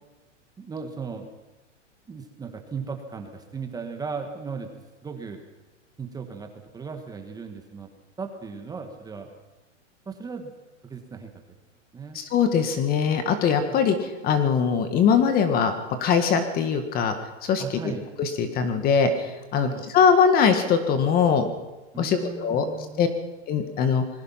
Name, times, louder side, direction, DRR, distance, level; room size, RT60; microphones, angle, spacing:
voice 1, 0.6-1.3 2.1-4.7 5.0-5.4 6.0-7.9 8.2-9.3 10.0-10.5 10.8-11.4 11.9-12.2 13.7-13.8 17.6-18.0 19.5-19.8 21.9-23.1, right 5 dB, 10° right, 4 dB, 1.7 m, -36 dB
voice 2, 12.1-15.7 16.0-17.1 17.4-17.9 18.2-21.5 22.0-22.6 23.0-23.1 23.5-24.0, left 6 dB, 25° left, 8 dB, 1.8 m, -22 dB
27.5 x 20.0 x 5.8 m, 1.1 s
supercardioid pair, 155°, 36 cm